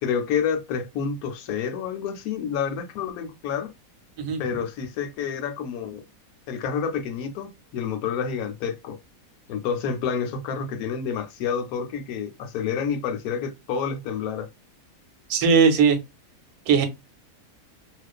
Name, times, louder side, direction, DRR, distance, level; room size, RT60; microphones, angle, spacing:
voice 1, 0.0-3.7 4.4-6.0 6.5-9.0 9.5-14.5, left 7 dB, 80° left, 1.0 m, -29 dB
voice 2, 15.3-16.0 16.7-16.9, right 6 dB, 85° right, 1.1 m, -18 dB
2.4 x 2.3 x 2.2 m
omnidirectional pair, 1.5 m